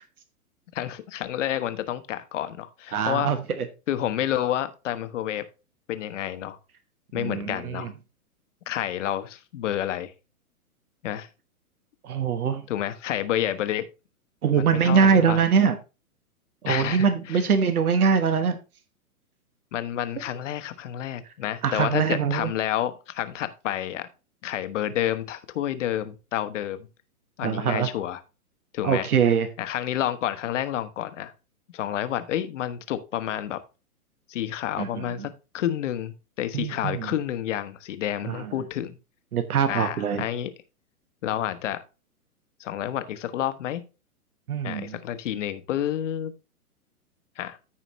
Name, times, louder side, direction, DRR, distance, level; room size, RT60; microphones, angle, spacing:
voice 1, 0.7-3.3 3.9-5.4 5.9-6.6 7.1-7.9 8.7-10.1 11.0-11.3 12.7-13.9 14.5-15.4 16.7-17.4 19.7-24.1 24.4-26.9 27.4-28.2 28.7-29.1 29.6-31.3 31.7-33.6 34.3-39.0 39.7-40.5 41.2-41.8 42.6-43.8 44.6-46.3 47.4-47.6, left 11 dB, 55° left, 11 dB, 1.2 m, -29 dB
voice 2, 2.9-3.4 7.2-7.9 12.0-12.6 14.4-15.8 16.6-18.6 21.6-22.5 27.4-27.9 28.8-29.5 34.8-35.1 36.5-37.1 38.3-38.5 39.3-40.2 44.5-45.0, right 6 dB, 75° right, 10 dB, 1.2 m, -23 dB
14.0 x 5.0 x 3.0 m, 0.30 s
figure-of-eight pair, 120°, 45 cm